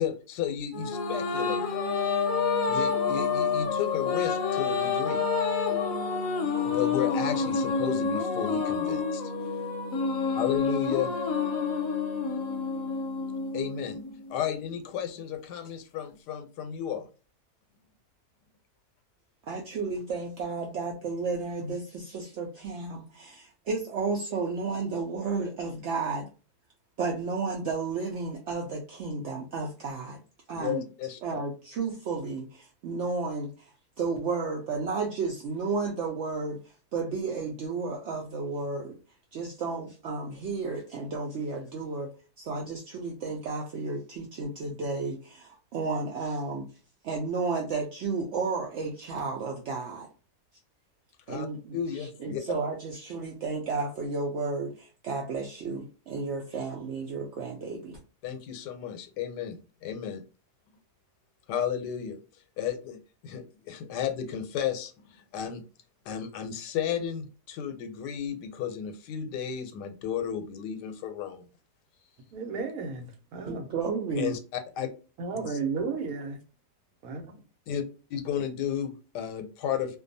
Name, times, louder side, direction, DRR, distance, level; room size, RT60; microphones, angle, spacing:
voice 1, 0.0-1.6 2.7-5.2 6.4-9.3 10.3-11.1 13.5-14.0 14.3-17.1 30.5-31.2 51.3-51.5 51.7-52.4 58.2-59.6 59.8-60.2 61.5-62.2 62.6-65.6 66.1-71.5 74.2-74.9 75.3-75.5 77.7-77.8 78.1-80.0, left 9 dB, 90° left, 1.2 m, -33 dB
sound 1, 0.7-14.3, left 5 dB, 65° left, 0.9 m, -28 dB
voice 2, 19.5-26.3 27.0-30.2 30.5-30.8 31.2-33.7 34.0-36.6 36.9-39.0 39.3-42.1 42.4-46.7 47.0-50.1 51.3-58.0 73.5-74.3, right 4 dB, 85° right, 0.6 m, -32 dB
voice 3, 72.3-73.7 75.2-76.4 77.0-77.4, right 5 dB, 65° right, 1.0 m, -33 dB
2.6 x 2.2 x 2.5 m
omnidirectional pair, 1.7 m